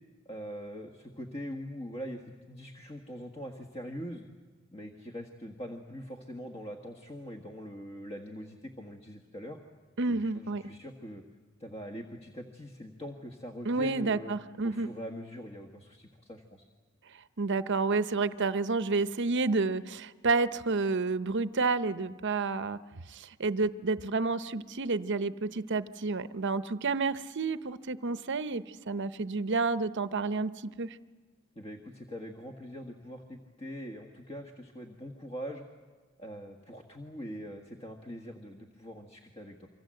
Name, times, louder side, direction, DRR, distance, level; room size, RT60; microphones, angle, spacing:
voice 1, 0.2-4.3 4.7-9.6 10.1-11.2 11.6-14.3 14.6-16.6 31.5-35.6 36.2-39.7, equal, 30° left, 2 dB, 1.6 m, -43 dB
voice 2, 10.0-10.6 13.6-14.9 17.4-22.8 23.1-31.0, right 3 dB, 55° right, 13 dB, 0.8 m, -30 dB
27.5 x 25.0 x 7.7 m, 1.4 s
head